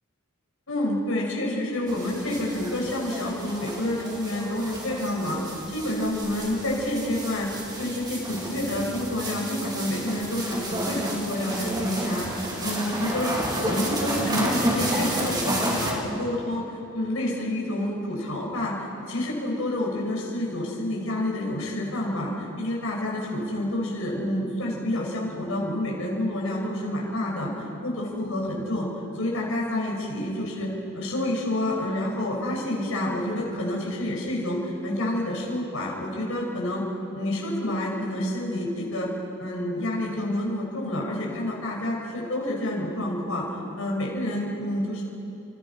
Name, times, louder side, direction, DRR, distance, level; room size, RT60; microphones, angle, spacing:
voice 1, 0.7-7.5 7.8-13.4 13.6-27.5 27.8-28.9 29.1-36.8 37.1-39.1 39.4-43.4 43.8-45.0, left 1 dB, 75° left, -3 dB, 6.2 m, -28 dB
sound 1, 1.9-15.9, right 1 dB, 20° right, 4.3 m, -31 dB
30.0 x 27.5 x 5.8 m, 2.7 s
head